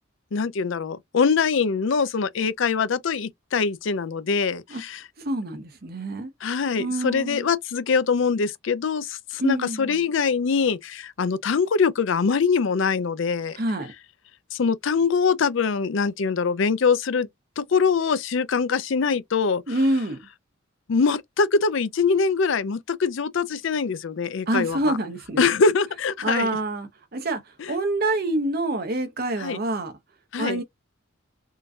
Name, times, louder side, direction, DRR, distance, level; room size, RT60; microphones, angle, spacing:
voice 1, 0.3-5.0 6.4-13.6 14.5-17.3 17.6-19.6 20.9-24.8 25.4-26.5 29.4-29.6 30.3-30.6, left 5 dB, 65° left, 0.5 m, -23 dB
voice 2, 5.2-6.3 6.8-7.5 9.4-10.0 13.5-13.9 19.7-20.2 24.5-25.5 26.2-29.9 30.4-30.6, right 1 dB, 45° right, 0.8 m, -26 dB
3.7 x 2.6 x 2.4 m
head